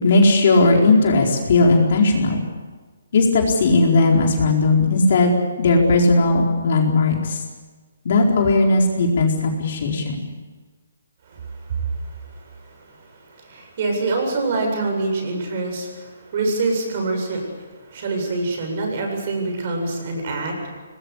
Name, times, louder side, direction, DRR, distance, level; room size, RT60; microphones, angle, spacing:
voice 1, 0.0-2.4 3.1-7.4 8.0-10.2, left 3 dB, 50° left, 0 dB, 4.5 m, -17 dB
voice 2, 11.3-20.8, right 3 dB, 40° right, 3 dB, 7.7 m, -26 dB
23.0 x 21.0 x 8.3 m, 1.3 s
hypercardioid pair, 165°, 0 cm